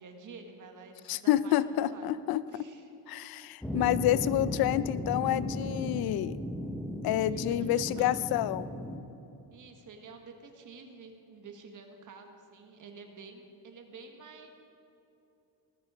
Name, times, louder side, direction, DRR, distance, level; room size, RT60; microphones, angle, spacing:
voice 1, 0.0-2.2 2.5-2.9 7.2-8.3 9.5-14.5, right 4 dB, 50° right, 4 dB, 1.7 m, -49 dB
voice 2, 1.1-2.4 3.1-6.4 7.0-8.7, left 13 dB, 65° left, 16 dB, 0.6 m, -28 dB
sound 1, 3.6-9.0, left 1 dB, 5° left, 1.2 m, -36 dB
18.5 x 10.5 x 5.0 m, 3.0 s
cardioid pair, 110°, 40 cm